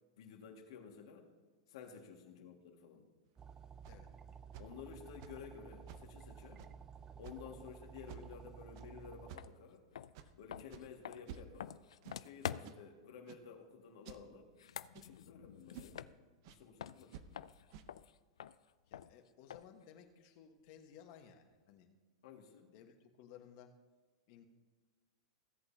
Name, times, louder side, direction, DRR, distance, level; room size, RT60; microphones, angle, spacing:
voice 1, 0.2-1.3 1.7-3.0 4.6-6.6 7.2-9.8 10.4-11.7 12.2-14.5 14.9-16.0 16.5-17.2 22.2-22.7, left 6 dB, 70° left, 2 dB, 1.9 m, -53 dB
sound 1, 3.3-3.4 3.8-4.0 4.5-4.7 5.2-5.5 5.9-6.1 6.6-6.8 7.2-7.5 8.1-8.4 8.8-8.9 9.3-9.6 10.1-10.3 10.7-10.9 11.3-11.7 12.0-12.2 12.6-12.8 13.3-13.5 14.1-14.3 14.9-15.2 15.7-16.0 16.4-16.6 17.1-17.3 17.7-17.9, right 8 dB, 55° right, 0.7 m, -52 dB
sound 2, 3.4-9.3, right 7 dB, 20° right, 0.3 m, -53 dB
sound 3, 9.4-9.5 9.9-12.9 14.4-16.5 16.8-19.8, left 9 dB, 90° left, 0.4 m, -47 dB
voice 2, 18.9-21.9 22.7-23.8 24.3-24.5, left 8 dB, 50° left, 5 dB, 1.3 m, -59 dB
17.0 x 8.1 x 2.8 m, 1.4 s
hypercardioid pair, 135°, 3 cm